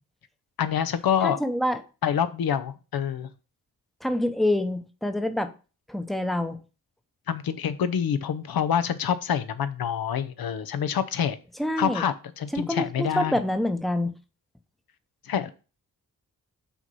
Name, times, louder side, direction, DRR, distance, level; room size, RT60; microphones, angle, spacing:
voice 1, 0.6-1.4 2.0-3.3 7.3-11.4 11.8-13.4 15.2-15.5, left 8 dB, 80° left, 0.7 m, -26 dB
voice 2, 1.2-1.8 4.0-5.5 5.9-6.6 11.6-12.0 12.5-14.1, left 1 dB, ahead, 0.7 m, -26 dB
6.1 x 4.1 x 5.3 m
cardioid pair, 85°, 36 cm